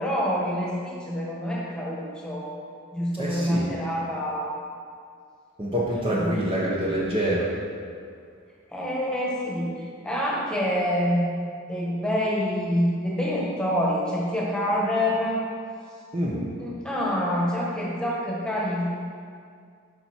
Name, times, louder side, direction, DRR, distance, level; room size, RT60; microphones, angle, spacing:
voice 1, 0.0-2.5 2.9-4.5 5.9-6.3 8.7-11.3 11.7-15.4 16.3-18.9, equal, 5° left, -5 dB, 1.5 m, -26 dB
voice 2, 3.2-3.7 5.6-7.5 16.1-16.4, right 1 dB, 25° right, -6 dB, 1.0 m, -26 dB
10.5 x 5.7 x 4.4 m, 2.2 s
head